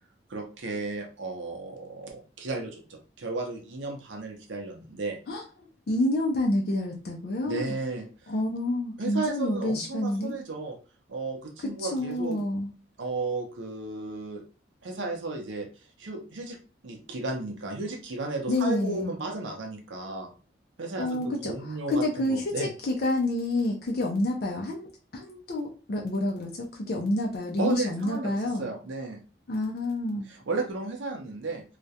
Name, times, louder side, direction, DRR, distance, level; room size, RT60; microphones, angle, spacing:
voice 1, 0.3-5.2 7.4-8.3 9.0-10.8 11.1-12.4 13.0-14.4 14.8-15.7 16.0-16.6 16.8-20.3 20.8-22.7 27.6-28.3 28.6-29.2 30.3-31.6, right 3 dB, 85° right, 2 dB, 0.6 m, -34 dB
voice 2, 5.9-7.8 8.3-10.3 11.8-12.7 18.5-19.1 21.0-28.6 29.5-30.2, left 1 dB, 55° left, 0 dB, 0.4 m, -28 dB
2.3 x 2.1 x 2.7 m, 0.34 s
head